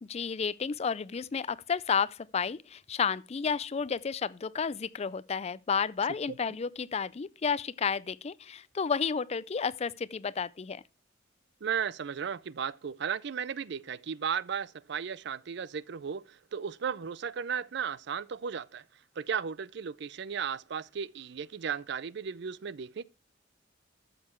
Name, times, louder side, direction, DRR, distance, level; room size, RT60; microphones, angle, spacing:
voice 1, 0.0-10.8, left 6 dB, 35° left, 0.4 m, -31 dB
voice 2, 11.6-18.8 19.2-23.0, right 7 dB, 65° right, 0.5 m, -35 dB
13.0 x 6.6 x 4.4 m
head